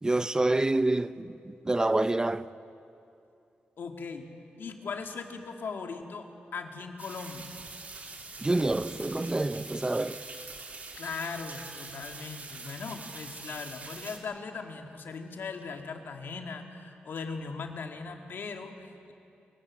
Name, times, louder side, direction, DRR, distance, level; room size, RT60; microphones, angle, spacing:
voice 1, 0.0-2.5 8.4-10.2, right 2 dB, 20° right, 0.5 m, -27 dB
voice 2, 3.8-4.3 4.6-6.2 6.5-7.5 11.0-19.1, left 5 dB, 70° left, 2.1 m, -39 dB
sound 1, 7.0-14.2, right 3 dB, 45° right, 2.8 m, -44 dB
25.5 x 19.0 x 7.7 m
cardioid pair, 90°, 4 cm